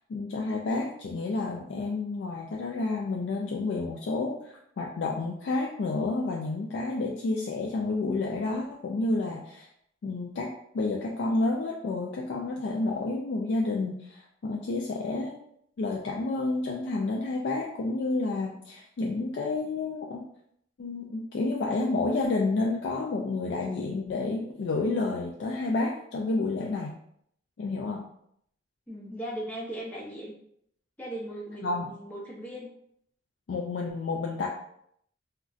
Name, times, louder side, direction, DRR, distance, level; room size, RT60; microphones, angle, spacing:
voice 1, 0.1-9.7 10.0-15.3 15.8-20.3 20.8-26.9 27.6-28.1 31.6-31.9 33.5-34.5, left 3 dB, 70° left, -1 dB, 0.3 m, -30 dB
voice 2, 28.9-30.3 31.0-32.7, right 1 dB, 10° left, -4 dB, 0.6 m, -38 dB
3.7 x 2.2 x 2.4 m, 0.70 s
head